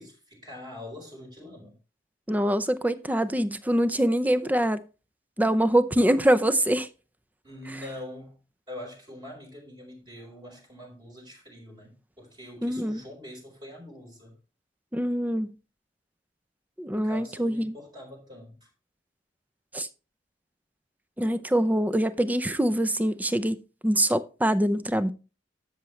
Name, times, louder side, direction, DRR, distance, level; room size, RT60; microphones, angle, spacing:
voice 1, 0.0-1.8 7.4-8.4 8.7-14.4 16.9-18.7, left 1 dB, 25° right, 4.6 m, -44 dB
voice 2, 2.3-4.8 5.4-6.9 12.6-13.0 14.9-15.5 16.8-17.8 19.7-19.9 21.2-23.6 23.8-25.1, right 1 dB, 10° right, 0.6 m, -24 dB
12.5 x 7.2 x 3.2 m
head